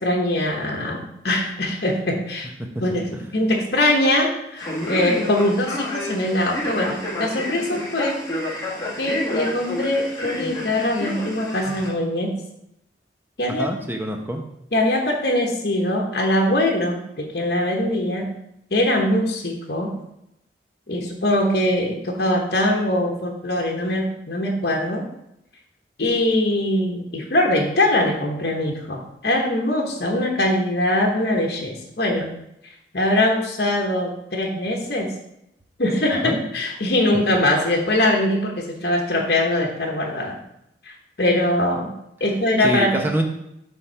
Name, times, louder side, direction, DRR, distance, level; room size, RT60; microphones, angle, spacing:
voice 1, 0.0-2.5 2.8-8.2 9.0-12.4 13.4-13.6 14.7-18.3 18.7-20.0 20.9-25.1 26.0-32.3 32.9-35.1 35.8-40.4 40.8-41.9 42.2-43.0, left 1 dB, 60° left, 0 dB, 1.1 m, -22 dB
Male speech man speaking, 4.6-11.9, left 1 dB, 20° left, 1.5 m, -29 dB
voice 2, 13.5-14.4 36.2-36.4 42.6-43.2, right 1 dB, 10° right, 3 dB, 0.8 m, -25 dB
7.1 x 3.7 x 5.6 m, 0.80 s
head